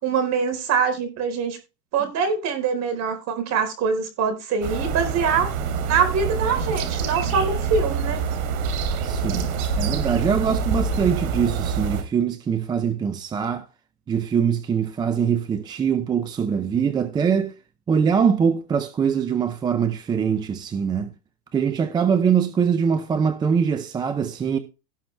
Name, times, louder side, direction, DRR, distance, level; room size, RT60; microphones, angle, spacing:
voice 1, 0.0-1.6 1.9-5.5 5.9-8.2, right 5 dB, 35° right, 4.2 m, -24 dB
sound 1, 4.6-12.0, right 5 dB, 60° right, 3.2 m, -26 dB
voice 2, 9.0-9.5 9.8-13.7 14.1-17.5 17.9-21.1 21.5-24.6, right 7 dB, 10° right, 0.5 m, -23 dB
17.5 x 5.9 x 3.3 m
supercardioid pair, 140°, 47 cm